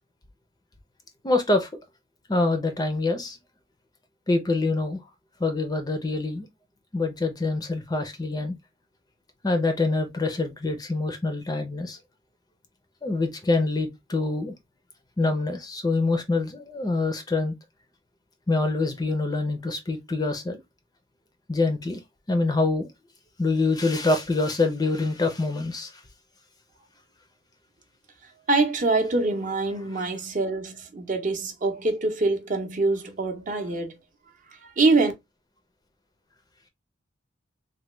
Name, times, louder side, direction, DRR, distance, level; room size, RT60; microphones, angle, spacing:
voice 1, 1.2-1.7 2.3-3.4 4.3-5.0 5.4-6.5 6.9-8.5 9.4-12.0 13.0-14.5 15.2-17.5 18.5-20.6 21.5-22.0 22.3-22.9 23.4-25.9, left 3 dB, 20° left, 0.5 m, -25 dB
voice 2, 28.5-34.0 34.5-35.1, right 3 dB, 40° right, 0.6 m, -24 dB
3.3 x 2.2 x 3.0 m
head